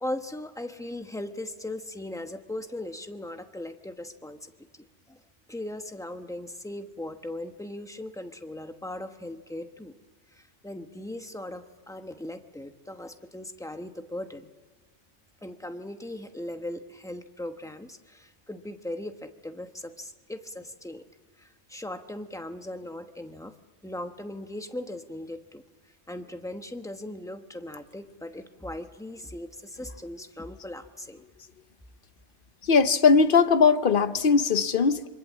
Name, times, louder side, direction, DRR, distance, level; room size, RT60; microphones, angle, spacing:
voice 1, 0.0-5.2 5.5-9.9 10.3-14.5 15.4-21.0 21.4-23.5 23.8-25.6 26.1-31.2, left 1 dB, 5° left, 7 dB, 1.0 m, -38 dB
voice 2, 32.6-35.1, left 5 dB, 50° left, 11 dB, 1.0 m, -20 dB
26.5 x 23.5 x 7.5 m, 1.4 s
omnidirectional pair, 1.2 m